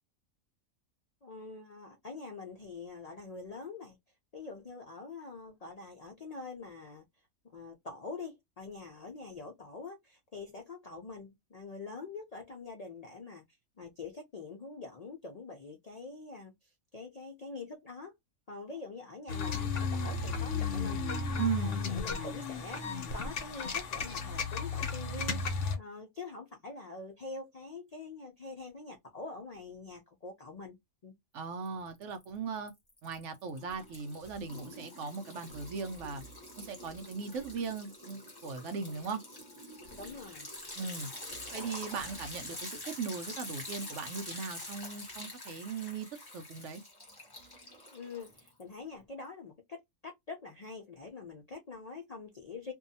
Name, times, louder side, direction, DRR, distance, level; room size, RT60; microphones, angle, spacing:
voice 1, 1.2-4.0 4.3-7.0 7.5-13.4 13.8-18.1 18.5-21.0 21.3-31.2 39.9-40.5 47.9-52.7, left 4 dB, 90° left, 0.3 m, -45 dB
sound 1, 19.3-25.8, left 4 dB, 65° left, 1.0 m, -34 dB
voice 2, 21.4-21.8 31.3-32.7 33.0-36.2 36.6-39.2 40.8-41.1 41.5-46.8, right 5 dB, 65° right, 0.9 m, -38 dB
Liquid, 31.7-32.2 32.6-48.8, left 1 dB, 20° left, 0.8 m, -46 dB
2.6 x 2.3 x 2.6 m
omnidirectional pair, 1.5 m